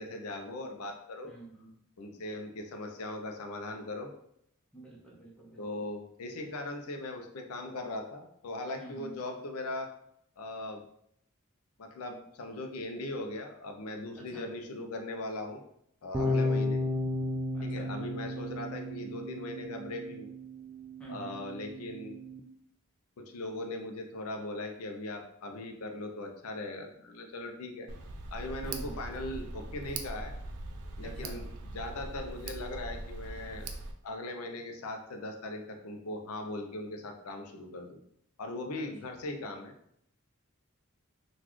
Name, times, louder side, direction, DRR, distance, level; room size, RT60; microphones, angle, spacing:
voice 1, 0.0-1.3 2.0-4.1 5.6-9.9 10.4-10.8 11.8-15.6 16.0-16.8 17.6-20.3 21.1-22.2 23.2-27.9 28.3-30.3 31.0-31.5 31.7-33.7 34.0-38.0 38.4-39.7, left 2 dB, 85° left, 4 dB, 0.5 m, -39 dB
voice 2, 1.2-1.8 4.7-5.7 8.8-9.2 14.2-14.5 16.2-16.5 17.5-17.9 21.0-21.4 28.6-29.0 31.0-31.4 38.7-39.1, right 2 dB, 5° left, -5 dB, 0.7 m, -48 dB
sound 1, 16.1-22.4, left 2 dB, 15° right, 0.3 m, -34 dB
Tick, 27.9-33.9, right 2 dB, 85° right, 0.5 m, -41 dB
3.9 x 2.3 x 3.0 m, 0.72 s
head